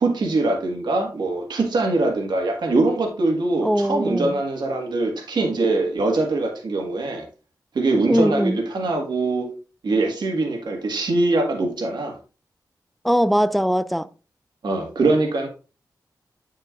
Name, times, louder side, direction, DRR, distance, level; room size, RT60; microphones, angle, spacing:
voice 1, 0.0-7.2 7.8-9.5 9.8-12.2 14.6-15.5, right 2 dB, 90° right, 1.6 m, -22 dB
voice 2, 3.6-4.4 8.1-8.6 13.0-14.1, equal, ahead, 0.3 m, -21 dB
8.7 x 6.6 x 2.5 m
wide cardioid pair, 150°, 7 cm